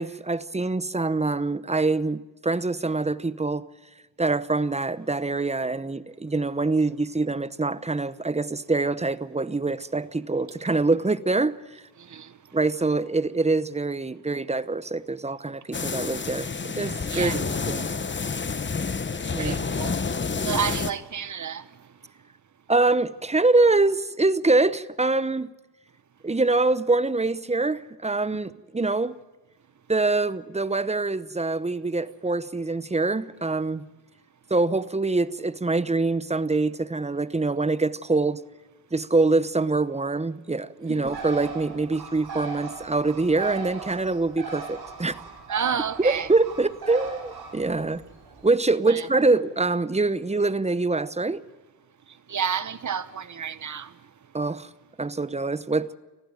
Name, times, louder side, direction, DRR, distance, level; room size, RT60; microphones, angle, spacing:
voice 1, 0.0-3.6 4.2-11.8 12.5-17.9 19.3-19.7 22.7-25.5 26.2-29.2 29.9-33.9 34.5-38.4 38.9-45.2 46.0-48.0 48.4-51.4 54.3-54.7 55.0-55.9, right 3 dB, 15° right, 0.8 m, -24 dB
voice 2, 12.0-12.3 17.1-17.4 19.4-20.0 20.4-21.7 40.9-41.0 45.5-46.3 48.9-49.0 52.3-53.9, right 7 dB, 40° right, 1.1 m, -30 dB
sound 1, 15.7-20.9, left 5 dB, 25° left, 1.0 m, -29 dB
Bird, 41.1-48.5, right 5 dB, 60° right, 5.1 m, -39 dB
19.5 x 15.0 x 9.1 m
cardioid pair, 65°, 43 cm